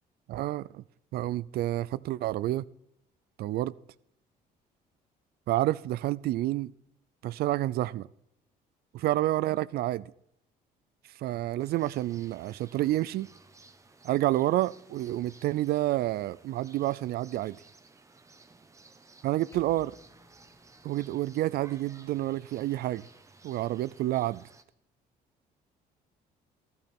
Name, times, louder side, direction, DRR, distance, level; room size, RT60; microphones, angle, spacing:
voice 1, 0.3-0.8 1.1-2.7 3.4-3.7 5.5-6.7 7.2-8.1 8.9-10.1 11.2-13.3 14.0-17.6 19.2-20.0 20.8-23.1 23.4-24.5, right 15 dB, 65° right, 0.4 m, -29 dB
sound 1, 11.6-24.6, right 3 dB, 20° right, 1.0 m, -57 dB
Percussion, 19.5-24.3, left 3 dB, 15° left, 1.0 m, -61 dB
14.5 x 12.0 x 4.4 m
cardioid pair, 110°, 17 cm